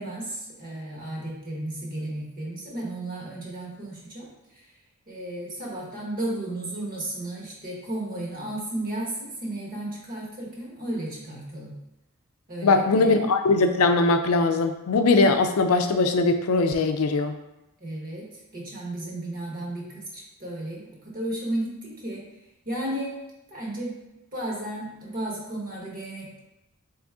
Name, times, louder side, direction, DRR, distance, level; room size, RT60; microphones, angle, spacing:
voice 1, 0.0-4.3 4.5-4.7 5.1-11.8 12.5-13.2 17.8-22.2 22.6-23.2 23.5-24.0 24.3-26.4, right 1 dB, 45° right, -3 dB, 1.1 m, -34 dB
voice 2, 12.6-17.3, left 3 dB, 85° left, 7 dB, 0.4 m, -21 dB
3.7 x 3.0 x 3.6 m, 0.93 s
head